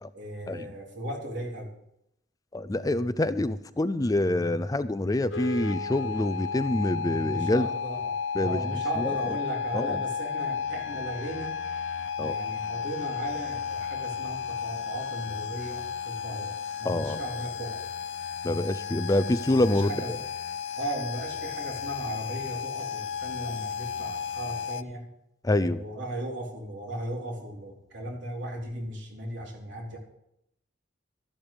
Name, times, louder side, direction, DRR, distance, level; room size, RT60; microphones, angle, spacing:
voice 1, 0.1-1.7 7.2-11.6 12.3-17.8 19.7-20.1 20.8-25.1 25.6-30.0, right 1 dB, 75° right, 0 dB, 3.6 m, -36 dB
voice 2, 2.5-7.7 8.3-8.6 9.0-9.3 9.7-10.0 12.2-12.4 16.8-17.2 18.4-19.9 25.4-25.8, left 1 dB, 20° left, 13 dB, 0.5 m, -26 dB
sound 1, 5.3-24.8, left 6 dB, 90° left, 0.7 m, -33 dB
13.0 x 11.5 x 5.1 m, 0.78 s
head